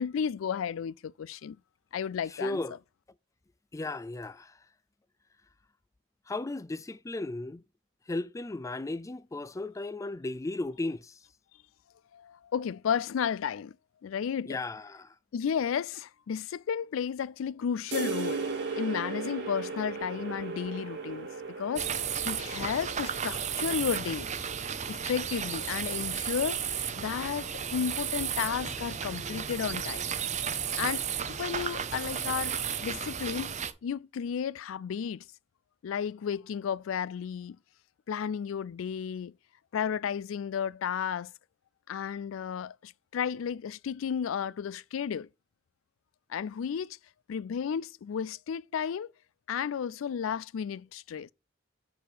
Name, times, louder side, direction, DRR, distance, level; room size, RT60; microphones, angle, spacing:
voice 1, 0.0-1.6 1.9-2.6 12.1-13.8 14.0-14.6 15.3-18.4 18.8-21.3 21.6-21.9 22.2-24.3 24.9-30.1 30.8-33.5 33.8-35.2 35.8-37.6 38.1-39.3 39.7-41.3 41.9-45.3 46.3-47.0 47.3-49.1 49.5-51.3, left 7 dB, 85° left, 0.4 m, -33 dB
voice 2, 2.4-2.8 3.7-4.5 6.3-7.6 8.1-11.1 14.5-15.1, left 2 dB, 15° left, 0.4 m, -35 dB
sound 1, 17.9-25.4, right 4 dB, 65° right, 1.7 m, -37 dB
sound 2, 21.8-33.7, right 8 dB, 35° right, 0.7 m, -33 dB
7.7 x 4.4 x 5.0 m
head